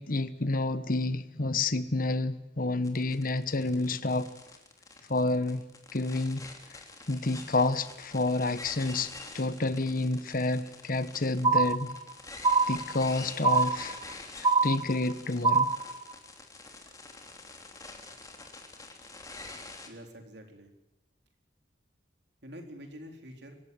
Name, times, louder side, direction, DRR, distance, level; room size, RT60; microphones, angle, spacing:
voice 1, 0.0-4.3 5.1-5.6 5.9-6.8 7.1-11.9 12.7-14.0 14.4-15.7, left 2 dB, 50° left, 1.1 m, -29 dB
sound 1, 2.8-19.9, left 3 dB, 20° left, 3.1 m, -47 dB
sound 2, 11.4-12.1 12.4-13.1 13.4-14.1 14.4-15.1 15.4-16.1, right 4 dB, 25° right, 0.7 m, -25 dB
voice 2, 19.9-20.7 22.4-23.6, equal, 65° right, 4.0 m, -46 dB
24.5 x 15.5 x 9.5 m
head